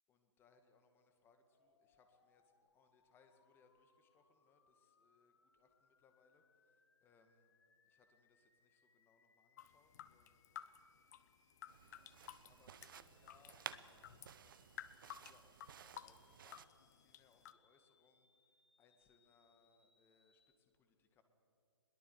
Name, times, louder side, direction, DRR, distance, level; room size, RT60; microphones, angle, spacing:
voice 1, 0.1-6.4 7.0-7.5 7.8-10.5 11.8-14.6 14.9-21.2, left 5 dB, 15° left, 7 dB, 1.9 m, -73 dB
sound 1, 1.5-20.5, left 4 dB, 60° left, 2.3 m, -77 dB
sound 2, 9.6-17.5, left 11 dB, 35° left, 0.9 m, -54 dB
sound 3, 11.7-16.7, right 8 dB, 45° right, 0.9 m, -55 dB
21.5 x 21.5 x 8.0 m, 2.5 s
figure-of-eight pair, 135°, 15 cm